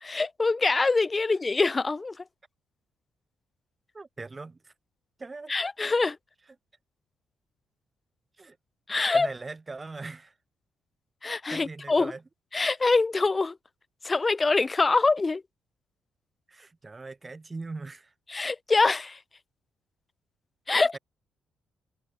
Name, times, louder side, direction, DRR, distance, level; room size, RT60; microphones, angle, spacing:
voice 1, 0.0-2.2 5.5-6.2 8.9-9.3 11.2-12.1 12.5-13.6 14.0-15.4 18.3-19.2 20.7-21.0, left 3 dB, 25° left, 0.4 m, -24 dB
voice 2, 3.9-4.7 5.2-5.5 8.4-8.6 9.1-10.3 11.5-12.2 16.5-18.1 20.7-21.0, right 3 dB, 25° right, 2.9 m, -40 dB
cardioid pair, 90°, 0 cm